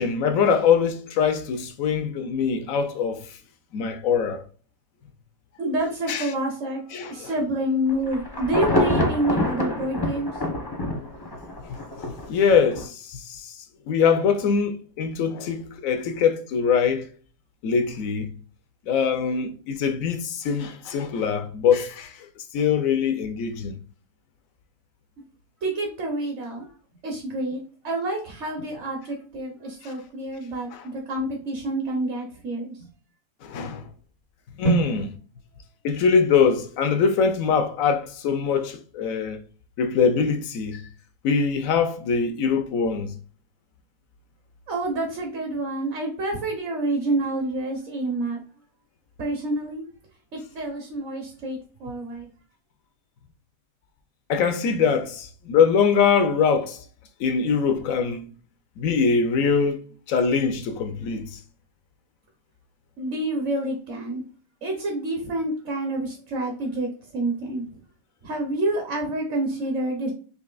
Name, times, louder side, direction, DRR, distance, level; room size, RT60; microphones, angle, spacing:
voice 1, 0.0-3.2 3.7-4.4 6.1-6.3 6.9-7.3 10.9-11.1 11.6-13.6 13.9-17.1 17.6-18.3 18.9-22.3 22.5-23.8 29.8-29.9 30.7-30.8 33.4-33.9 34.6-35.0 35.8-39.4 39.8-40.9 41.2-43.1 54.3-56.8 57.2-58.3 58.8-59.8 60.1-61.4, left 6 dB, 65° left, 0.9 m, -23 dB
voice 2, 5.6-6.8 7.1-10.3 19.3-19.5 25.6-26.7 27.0-32.7 34.6-34.9 44.7-48.4 49.2-49.8 50.3-52.3 63.0-64.2 64.6-66.9 67.1-67.7 68.2-70.1, right 1 dB, 50° right, 1.2 m, -28 dB
Insect / Thunder / Rain, 7.9-12.3 12.7-12.8, left 1 dB, 20° left, 0.6 m, -25 dB
5.2 x 2.8 x 2.3 m
omnidirectional pair, 1.8 m